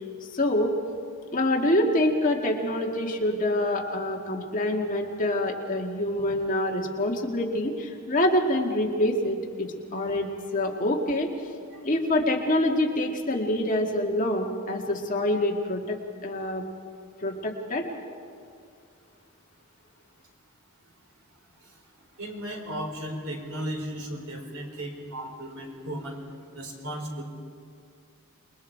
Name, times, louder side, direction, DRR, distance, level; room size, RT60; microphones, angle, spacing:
voice 1, 0.3-0.7 1.3-11.3 11.8-16.6 17.2-17.9, left 1 dB, 35° left, 1 dB, 2.0 m, -26 dB
voice 2, 22.2-26.2 26.5-27.2, equal, 75° right, 2 dB, 3.8 m, -35 dB
28.0 x 21.5 x 4.6 m, 2.3 s
head